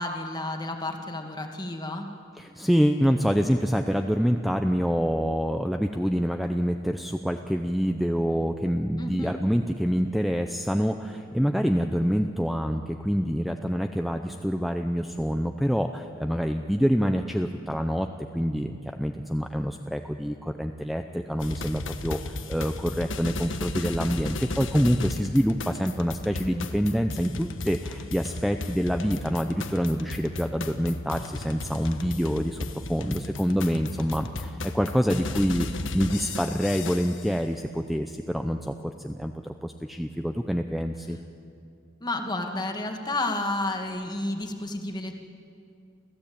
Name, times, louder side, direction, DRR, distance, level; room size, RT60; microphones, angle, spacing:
voice 1, 0.0-2.1 9.0-9.3 42.0-45.2, left 2 dB, 20° left, 4 dB, 1.9 m, -31 dB
voice 2, 2.4-41.2, equal, ahead, 5 dB, 0.7 m, -26 dB
sound 1, 21.4-37.3, left 2 dB, 80° left, 1.4 m, -35 dB
29.0 x 15.0 x 8.7 m, 2.5 s
head